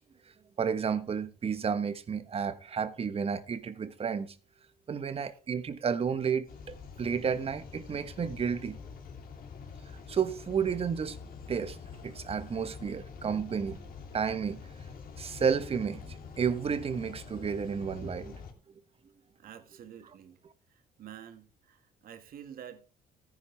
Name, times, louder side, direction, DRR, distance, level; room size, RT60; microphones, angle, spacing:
voice 1, 0.6-4.3 4.9-8.8 10.1-11.2 11.5-11.8 12.0-13.8 14.1-14.6 15.2-18.3, right 6 dB, 35° right, 1.3 m, -31 dB
sound 1, 6.5-18.5, left 5 dB, 60° left, 2.8 m, -46 dB
voice 2, 19.4-20.4 20.7-22.9, right 9 dB, 60° right, 2.1 m, -49 dB
14.0 x 10.5 x 3.5 m
cardioid pair, 110°, 17 cm